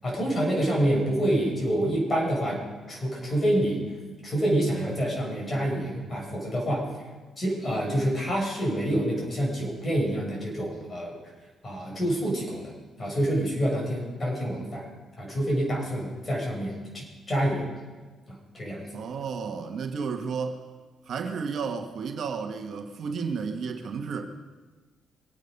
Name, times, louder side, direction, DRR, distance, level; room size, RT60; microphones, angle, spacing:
voice 1, 0.0-2.6 2.9-3.8 4.2-6.9 7.4-11.2 11.6-14.9 15.2-17.7 18.3-19.0, right 1 dB, 30° left, -2 dB, 6.5 m, -27 dB
voice 2, 18.9-20.6 21.1-24.3, right 5 dB, 60° right, 5 dB, 1.4 m, -32 dB
23.5 x 9.3 x 5.4 m, 1.3 s
cardioid pair, 90°, 0 cm